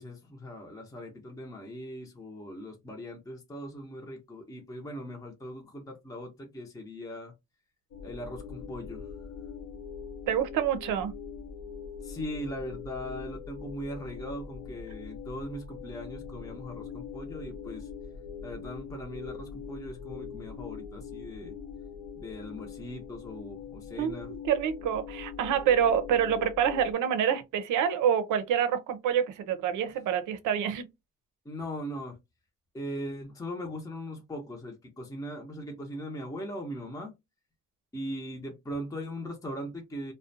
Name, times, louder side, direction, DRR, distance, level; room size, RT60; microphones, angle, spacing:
voice 1, 0.0-7.3 8.0-9.1 12.0-17.9 18.4-21.5 22.2-24.3 31.4-32.2 32.7-37.1 37.9-40.1, equal, 10° left, 0.7 m, -39 dB
sound 1, 7.9-26.9, left 6 dB, 65° left, 0.8 m, -42 dB
voice 2, 10.3-11.1 24.0-30.9, right 8 dB, 80° right, 0.6 m, -27 dB
2.4 x 2.2 x 2.6 m
cardioid pair, 90°, 30 cm